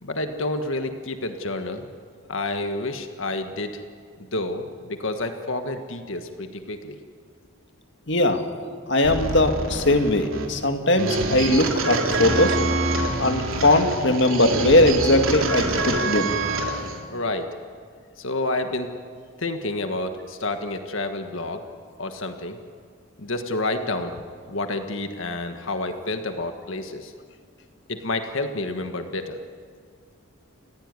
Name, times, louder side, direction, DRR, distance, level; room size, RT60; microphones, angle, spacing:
voice 1, 0.0-1.9 2.3-3.8 4.3-7.0 17.1-17.5 18.2-18.9 19.4-21.6 22.0-22.6 23.2-24.1 24.5-27.1 27.9-29.4, left 2 dB, 70° left, 7 dB, 1.6 m, -29 dB
voice 2, 8.1-8.4 8.9-12.6 13.2-16.4, left 1 dB, 55° left, 6 dB, 2.2 m, -20 dB
sound 1, 9.0-17.0, right 2 dB, 80° right, 3.2 m, -26 dB
30.0 x 16.0 x 9.8 m, 2.1 s
head